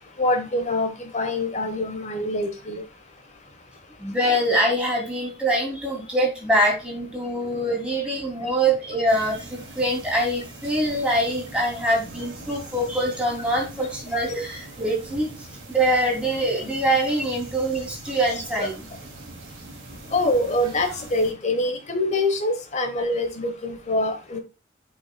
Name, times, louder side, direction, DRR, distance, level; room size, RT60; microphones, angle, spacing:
voice 1, 0.2-2.8 14.3-14.4 18.6-18.7 20.1-24.4, left 1 dB, 40° left, 7 dB, 1.1 m, -25 dB
voice 2, 4.0-18.8, right 1 dB, 5° right, -3 dB, 2.7 m, -24 dB
sound 1, 9.1-21.3, right 2 dB, 80° right, 1.9 m, -42 dB
8.6 x 5.4 x 2.2 m, 0.30 s
head